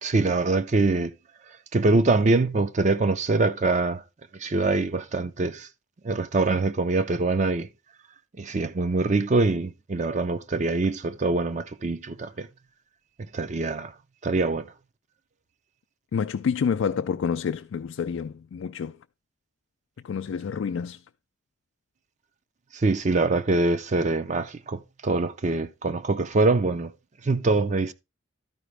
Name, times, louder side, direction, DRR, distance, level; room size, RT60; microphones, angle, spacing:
voice 1, 0.0-1.1 1.7-4.0 4.3-5.7 6.0-7.7 8.4-12.5 13.3-13.9 14.2-14.7 22.7-26.9 27.2-27.9, right 3 dB, 35° right, 0.5 m, -24 dB
voice 2, 16.1-19.0 20.0-21.0, left 6 dB, 85° left, 0.4 m, -28 dB
12.5 x 5.0 x 3.3 m
head